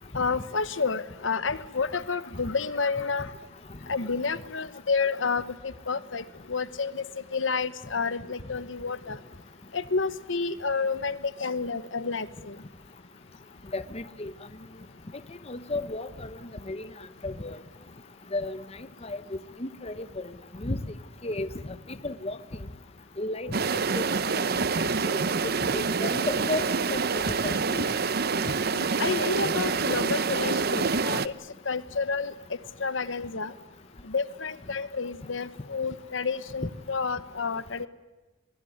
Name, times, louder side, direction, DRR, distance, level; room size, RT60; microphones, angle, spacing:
voice 1, 0.1-3.3 3.9-7.0 7.3-9.2 9.7-12.6 28.7-31.3 31.6-32.3 32.8-33.5 34.0-37.9, left 4 dB, 70° left, 14 dB, 1.1 m, -30 dB
voice 2, 13.7-14.3 15.5-16.4 16.7-16.9 17.2-17.6 18.3-18.6 19.0-20.3 20.6-20.9 21.2-21.5 22.0-22.4 23.2-24.0 25.1-25.2 25.7-26.6 26.9-27.8, left 2 dB, 30° left, 12 dB, 0.9 m, -33 dB
sound 1, 23.5-31.3, right 4 dB, 50° right, 0.8 m, -27 dB
24.0 x 20.5 x 9.6 m, 1.2 s
head